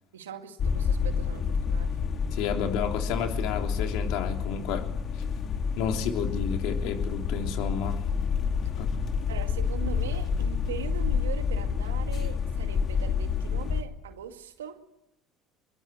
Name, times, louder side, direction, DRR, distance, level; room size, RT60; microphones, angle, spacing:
voice 1, 0.1-2.0 9.3-14.8, right 9 dB, 85° right, 6 dB, 2.2 m, -40 dB
sound 1, 0.6-13.8, left 6 dB, 50° left, 2.2 m, -29 dB
voice 2, 2.3-4.9 5.8-8.0 8.8-9.0, left 7 dB, 70° left, 4 dB, 3.4 m, -31 dB
24.5 x 22.5 x 9.2 m, 0.84 s
hypercardioid pair, 70°, 0 cm